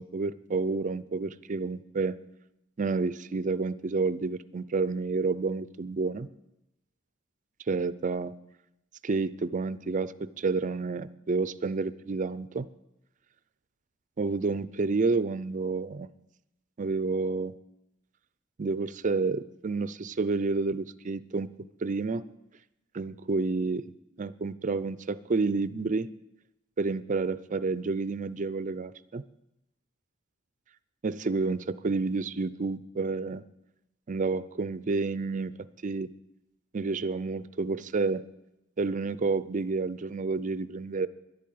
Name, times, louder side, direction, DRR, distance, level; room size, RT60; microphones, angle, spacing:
voice 1, 0.0-2.2 2.8-6.3 7.7-8.3 9.0-12.7 14.2-16.1 16.8-17.5 18.6-21.5 21.8-22.2 22.9-23.8 24.2-26.1 26.8-29.2 31.0-33.4 34.1-35.5 35.8-36.1 36.7-38.2 38.8-41.1, right 3 dB, 40° right, 16 dB, 0.5 m, -29 dB
11.5 x 8.5 x 9.3 m, 0.89 s
head